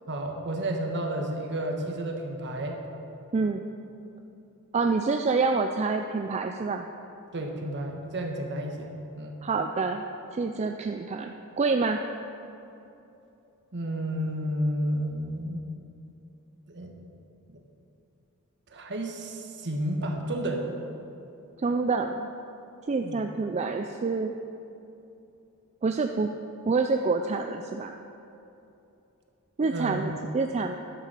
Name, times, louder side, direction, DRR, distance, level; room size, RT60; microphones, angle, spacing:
voice 1, 0.1-2.8 7.3-9.4 13.7-15.6 16.7-16.9 17.5-17.6 18.7-20.7 23.0-23.2 29.7-30.0, right 1 dB, 55° right, 2 dB, 1.4 m, -31 dB
voice 2, 3.3-3.6 4.7-6.9 9.4-10.0 10.3-12.0 21.6-22.3 22.9-24.3 25.8-26.3 26.7-28.0 29.6-30.7, right 4 dB, 30° right, 5 dB, 0.4 m, -27 dB
11.5 x 6.9 x 6.7 m, 2.8 s
head